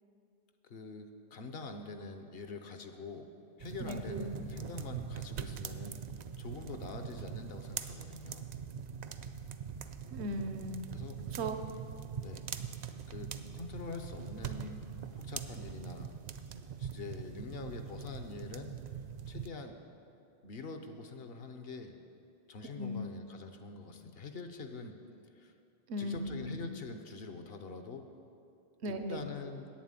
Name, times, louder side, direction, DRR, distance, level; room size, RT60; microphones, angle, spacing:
voice 1, 0.6-3.3 3.6-6.1 6.4-8.5 10.9-11.2 12.2-12.5 13.1-14.8 15.1-16.1 16.8-18.8 19.3-19.8 20.4-22.0 22.5-25.0 25.3-25.5 26.0-28.1 28.9-29.7, left 3 dB, 65° left, 6 dB, 1.0 m, -45 dB
sound 1, 3.6-19.5, right 7 dB, 55° right, 0.4 m, -42 dB
voice 2, 3.8-4.3 10.1-10.9 11.3-11.6 22.8-23.1 25.9-26.7 28.8-29.3, equal, 75° right, 7 dB, 1.0 m, -37 dB
8.5 x 7.4 x 8.9 m, 2.6 s
omnidirectional pair, 1.1 m